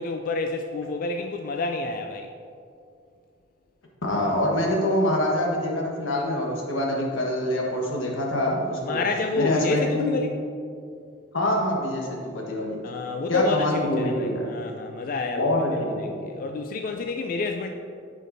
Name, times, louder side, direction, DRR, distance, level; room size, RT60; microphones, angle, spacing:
voice 1, 0.0-2.3 8.9-10.3 12.8-15.6 16.0-17.7, left 3 dB, 45° left, 4 dB, 0.3 m, -29 dB
voice 2, 4.0-9.0 9.3-10.1 11.3-12.8 13.3-14.5 15.4-16.2, left 1 dB, 90° left, -1 dB, 1.3 m, -25 dB
9.8 x 5.1 x 2.6 m, 2.4 s
head